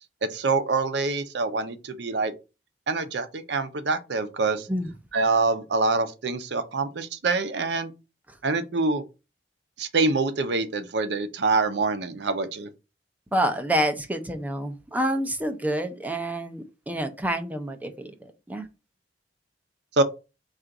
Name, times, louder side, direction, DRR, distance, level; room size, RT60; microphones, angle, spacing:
voice 1, 0.2-2.3 2.9-4.7 5.1-7.9 8.4-9.0 9.8-12.7 20.0-20.1, right 3 dB, 70° right, 0.6 m, -25 dB
voice 2, 13.3-18.7, right 1 dB, 10° right, 0.5 m, -28 dB
3.8 x 2.5 x 4.5 m
head